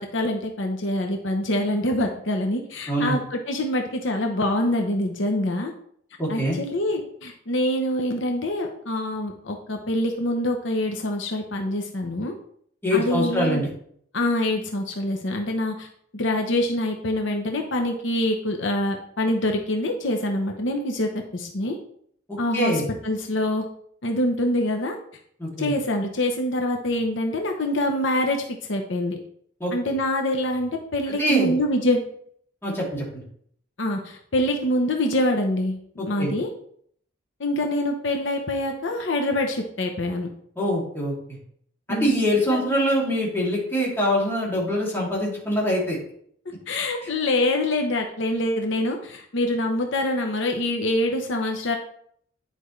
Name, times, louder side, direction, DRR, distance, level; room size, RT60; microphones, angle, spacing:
voice 1, 0.0-5.7 6.3-12.3 12.9-13.6 14.1-15.9 16.1-21.8 22.4-22.7 23.0-23.6 24.0-25.0 25.6-29.2 29.7-32.0 33.8-35.8 36.1-36.5 37.4-40.3 41.9-42.2 42.5-42.6 46.7-51.8, left 1 dB, 70° left, 3 dB, 0.9 m, -25 dB
voice 2, 2.9-3.2 6.2-6.6 12.8-13.7 22.5-22.8 25.4-25.7 29.6-29.7 31.1-31.5 32.6-33.2 36.0-36.3 40.6-41.4 41.9-46.0, equal, 10° left, -5 dB, 2.7 m, -24 dB
10.0 x 5.2 x 3.2 m, 0.65 s
head